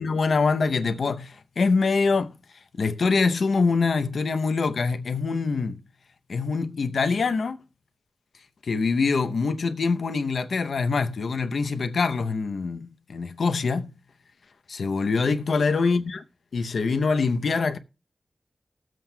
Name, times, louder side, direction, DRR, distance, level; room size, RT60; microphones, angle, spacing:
voice 1, 0.0-2.3 2.7-5.8 6.3-7.6 8.6-13.9 14.7-16.2 16.5-17.8, left 4 dB, 90° left, 0.7 m, -24 dB
20.0 x 7.6 x 2.2 m
wide cardioid pair, 100°, 0 cm